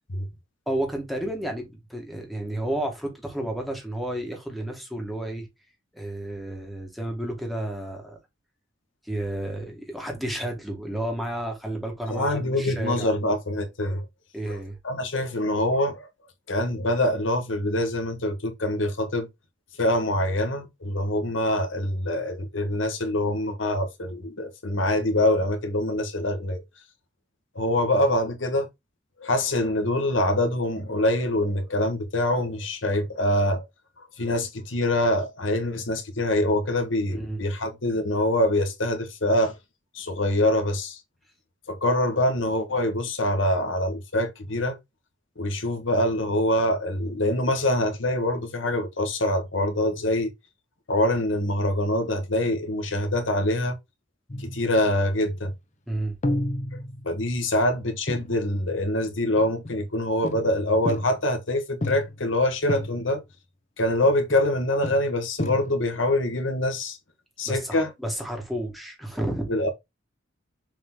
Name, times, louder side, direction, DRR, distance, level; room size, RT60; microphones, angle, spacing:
voice 1, 0.7-5.5 5.9-8.2 9.0-13.1 14.3-14.8 37.1-37.4 55.9-56.1 67.4-69.5, right 1 dB, ahead, 2.1 m, -31 dB
voice 2, 12.1-14.0 14.5-14.6 14.8-16.1 16.5-19.3 19.8-26.6 27.5-28.7 29.2-33.6 34.0-39.5 39.9-41.0 41.7-44.8 45.4-50.3 50.9-53.8 54.4-55.5 56.7-56.8 57.0-63.2 63.8-67.0 67.4-67.9 69.5-69.7, left 1 dB, 85° left, 1.6 m, -25 dB
sound 1, 54.3-55.1 56.2-57.4 58.1-58.4 59.4-59.9 60.2-61.4 61.8-62.4 62.7-63.2 64.0-64.6 64.8-66.0, left 1 dB, 40° left, 0.9 m, -32 dB
6.9 x 3.8 x 3.9 m
head